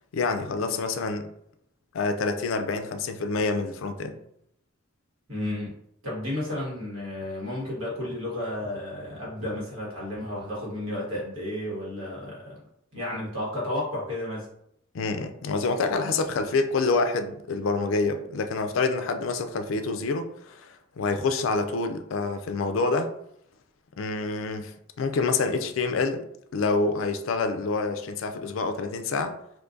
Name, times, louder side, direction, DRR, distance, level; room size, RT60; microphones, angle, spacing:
voice 1, 0.1-1.3 1.9-4.2 14.9-23.1 24.0-26.2 26.5-29.3, left 3 dB, 70° left, 7 dB, 0.4 m, -27 dB
voice 2, 5.3-5.7 6.0-12.6 12.9-14.5, left 1 dB, 80° right, -5 dB, 1.4 m, -32 dB
3.7 x 2.6 x 2.5 m, 0.75 s
head